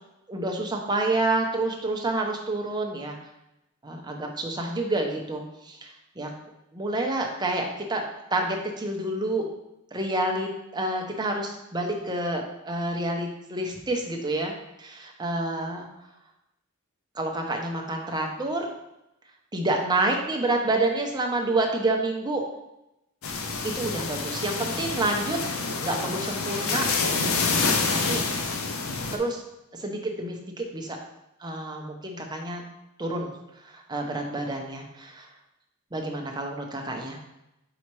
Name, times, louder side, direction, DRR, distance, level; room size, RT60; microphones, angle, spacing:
voice 1, 0.3-3.1 3.8-6.3 6.7-8.1 8.3-9.5 9.9-14.5 14.8-15.8 17.1-18.7 19.5-22.4 23.6-25.4 25.8-26.9 27.9-28.2 29.1-29.4 29.7-31.0 31.4-32.6 33.0-33.3 33.6-35.3 35.9-37.2, right 2 dB, 20° right, 2 dB, 0.8 m, -28 dB
sound 1, 23.2-29.2, left 4 dB, 85° left, 0.7 m, -27 dB
4.9 x 4.2 x 4.7 m, 0.90 s
head